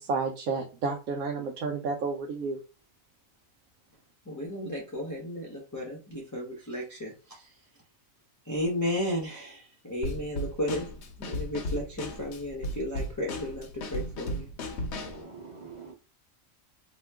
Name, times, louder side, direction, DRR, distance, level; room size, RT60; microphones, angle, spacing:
voice 1, 0.0-2.6, right 4 dB, 90° right, 1 dB, 1.0 m, -31 dB
voice 2, 4.3-7.5 8.5-10.9 11.2-14.5, left 1 dB, 20° left, -4 dB, 0.5 m, -34 dB
Drum kit / Snare drum, 10.0-15.2, left 1 dB, 60° left, 0.9 m, -35 dB
voice 3, 15.0-15.9, right 4 dB, 25° right, -2 dB, 0.8 m, -45 dB
2.9 x 2.1 x 3.4 m, 0.34 s
omnidirectional pair, 1.4 m